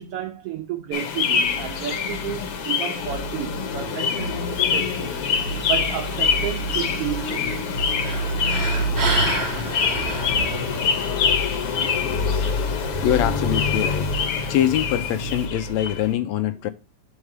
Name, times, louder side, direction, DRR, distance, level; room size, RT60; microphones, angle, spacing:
voice 1, 0.0-5.3 5.7-7.7, right 11 dB, 75° right, 1.3 m, -32 dB
sound 1, 0.9-16.1, left 4 dB, 65° left, 1.7 m, -24 dB
sound 2, 4.4-15.5, right 2 dB, 30° right, 1.1 m, -33 dB
voice 2, 13.0-14.1 14.5-16.7, left 11 dB, 80° left, 1.7 m, -23 dB
6.3 x 4.8 x 4.9 m
omnidirectional pair, 3.4 m